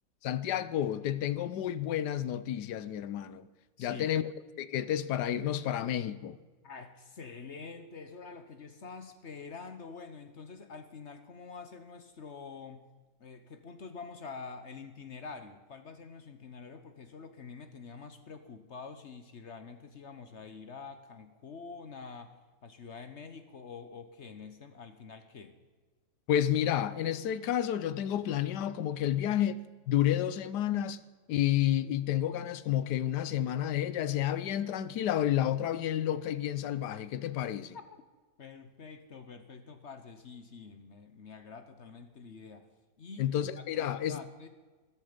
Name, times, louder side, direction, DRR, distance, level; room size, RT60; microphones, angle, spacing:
voice 1, 0.2-3.5 3.8-4.3 4.6-6.4 26.3-29.6 29.9-31.0 31.3-37.8 43.2-44.2, left 11 dB, 70° left, 1.2 m, -30 dB
voice 2, 6.6-12.9 13.2-22.3 22.6-25.5 37.7-38.0 38.4-42.7 43.0-44.5, left 5 dB, 45° left, 1.1 m, -47 dB
14.0 x 14.0 x 5.1 m
omnidirectional pair, 2.0 m